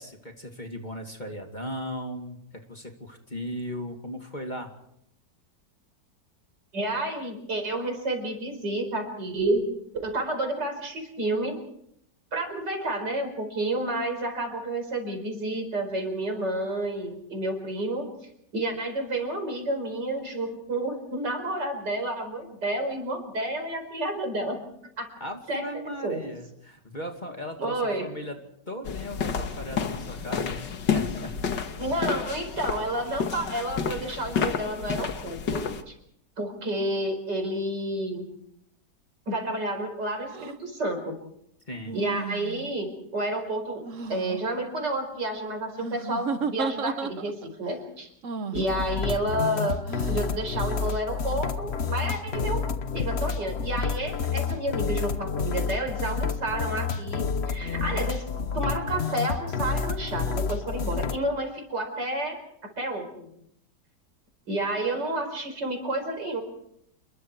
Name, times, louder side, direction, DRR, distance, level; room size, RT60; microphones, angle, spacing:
voice 1, 0.0-2.4 2.7-4.7 25.2-28.4 28.7-31.4 32.0-32.2 41.7-42.0, equal, 25° left, 3 dB, 2.4 m, -37 dB
voice 2, 6.7-9.6 10.0-11.6 12.3-18.1 18.5-24.6 25.0-25.1 25.5-25.7 26.0-26.2 27.6-28.1 31.8-36.0 36.4-38.2 39.3-41.2 41.9-48.1 48.5-49.8 50.1-52.6 52.9-58.3 58.5-63.3 64.5-66.4, right 1 dB, 75° right, 5 dB, 5.3 m, -30 dB
sound 1, 28.8-35.8, left 6 dB, 90° left, 2.1 m, -30 dB
sound 2, 40.3-40.5 41.8-42.7 43.8-44.4 45.8-47.5 48.2-48.7 49.9-50.3, right 5 dB, 50° right, 1.3 m, -33 dB
sound 3, 48.5-61.2, left 5 dB, 45° left, 1.1 m, -29 dB
28.5 x 22.0 x 4.7 m, 0.74 s
omnidirectional pair, 1.9 m